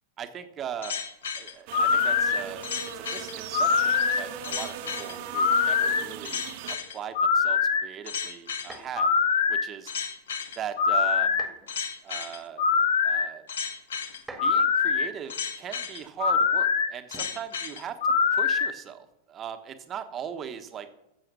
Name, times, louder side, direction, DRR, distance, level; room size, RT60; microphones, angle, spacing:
voice 1, 0.2-1.0 1.3-2.6 2.9-9.9 10.6-11.4 12.0-12.7 13.0-13.5 14.4-18.0 18.3-20.9, right 8 dB, 25° right, 8 dB, 1.3 m, -39 dB
sound 1, 0.8-18.7, left 6 dB, 65° left, 1.1 m, -25 dB
sound 2, 1.7-6.8, right 8 dB, 45° right, 1.1 m, -38 dB
sound 3, 8.6-9.1 11.3-11.8 12.8-12.9 14.1-14.9 17.1-17.5 18.7-19.1, right 2 dB, 10° right, 2.0 m, -46 dB
14.0 x 7.7 x 6.1 m, 0.86 s
figure-of-eight pair, 90°, 0 cm